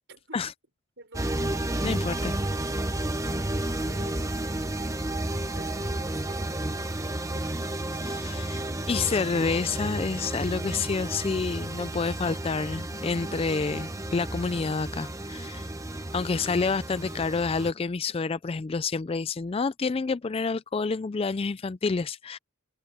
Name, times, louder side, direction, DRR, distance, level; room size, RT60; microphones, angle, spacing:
voice 1, 0.1-0.5 1.0-1.4 3.9-4.9 5.5-7.8, right 2 dB, 55° right, 5.8 m, -52 dB
sound 1, 1.1-17.7, right 1 dB, 15° right, 0.9 m, -32 dB
voice 2, 1.8-2.3 8.0-15.7 16.1-22.4, left 4 dB, 25° left, 0.3 m, -28 dB
head